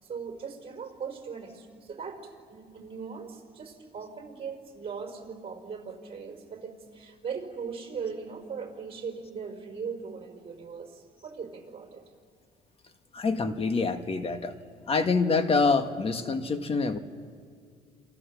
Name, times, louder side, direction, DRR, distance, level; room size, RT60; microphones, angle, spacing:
voice 1, 0.0-12.0, right 6 dB, 35° right, 3 dB, 5.2 m, -39 dB
voice 2, 13.1-14.5 14.9-17.0, left 4 dB, 35° left, 8 dB, 1.7 m, -26 dB
28.5 x 26.0 x 7.2 m, 2.1 s
cardioid pair, 110°, 17 cm